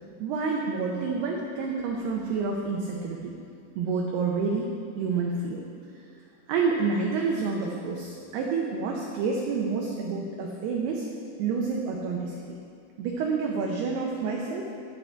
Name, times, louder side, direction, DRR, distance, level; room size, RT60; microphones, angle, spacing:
voice 1, 0.2-3.3 3.8-4.7 5.0-5.6 5.9-6.1 6.5-11.1 11.4-12.6 13.0-14.7, right 4 dB, 80° right, -1 dB, 2.4 m, -28 dB
10.5 x 10.0 x 4.5 m, 2.3 s
omnidirectional pair, 5.7 m